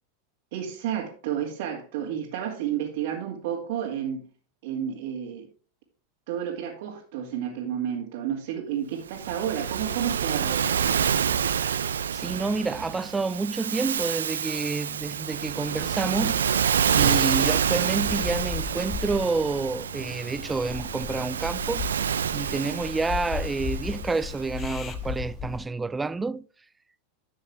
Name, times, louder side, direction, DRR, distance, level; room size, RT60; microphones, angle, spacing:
voice 1, 0.5-4.2 4.6-5.5 6.3-11.0, right 9 dB, 65° right, 2.3 m, -31 dB
Waves surf, 9.1-24.6, right 8 dB, 85° right, 0.6 m, -28 dB
voice 2, 12.1-16.4 16.9-26.4, right 3 dB, 15° right, 0.3 m, -29 dB
sound 1, 18.0-25.6, left 7 dB, 30° left, 1.4 m, -36 dB
11.5 x 6.9 x 3.5 m
hypercardioid pair, 105°, 0 cm